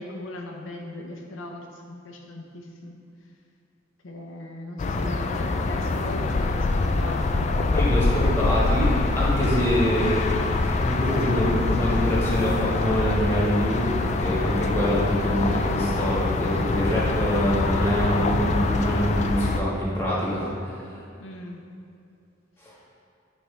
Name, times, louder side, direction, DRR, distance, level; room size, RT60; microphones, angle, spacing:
voice 1, 0.0-3.0 4.0-7.5 21.2-21.6, left 1 dB, 80° left, 1 dB, 0.7 m, -38 dB
sound 1, 4.8-19.6, left 3 dB, 35° left, 0.3 m, -24 dB
voice 2, 7.7-20.9 22.6-22.7, equal, 15° left, -7 dB, 1.6 m, -25 dB
sound 2, 8.0-8.9 9.6-12.2 12.4-13.5 13.8-13.9 14.2-14.6, right 1 dB, 45° right, 0.8 m, -40 dB
8.8 x 4.4 x 3.3 m, 2.5 s
head